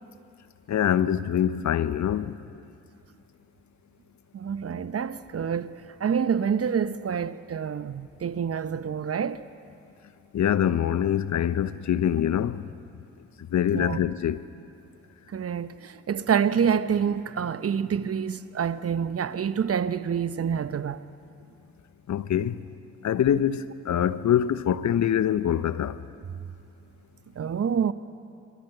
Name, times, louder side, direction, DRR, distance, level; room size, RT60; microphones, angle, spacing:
voice 1, 0.7-2.4 10.3-12.6 13.5-14.4 22.1-22.5 23.0-25.9, left 10 dB, 50° left, 0.9 m, -24 dB
voice 2, 4.3-9.5 13.7-14.0 15.3-21.0 27.3-27.9, right 7 dB, 40° right, 1.0 m, -27 dB
25.5 x 22.5 x 8.0 m
hypercardioid pair, 45°, 35 cm